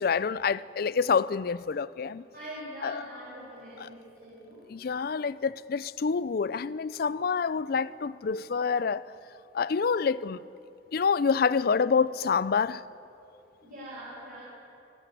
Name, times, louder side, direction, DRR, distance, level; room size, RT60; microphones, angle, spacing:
voice 1, 0.0-2.2 2.8-3.0 3.8-3.9 4.7-9.0 9.5-10.5 10.9-12.8, left 5 dB, 55° left, 0.4 m, -27 dB
voice 2, 2.3-4.7 13.6-14.4, equal, 50° right, 5.5 m, -43 dB
28.0 x 10.0 x 9.1 m
head